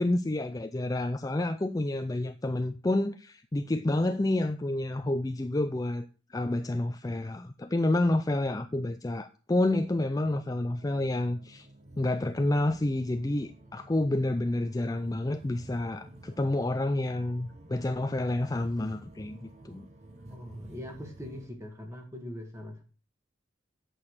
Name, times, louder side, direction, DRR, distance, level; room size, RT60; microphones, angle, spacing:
voice 1, 0.0-11.7 12.0-19.4 19.7-19.9, left 1 dB, 20° left, 0.4 m, -29 dB
sound 1, 10.2-21.5, right 1 dB, 35° right, 1.3 m, -50 dB
voice 2, 20.3-22.8, left 1 dB, 15° right, 1.9 m, -42 dB
8.6 x 6.3 x 6.5 m
head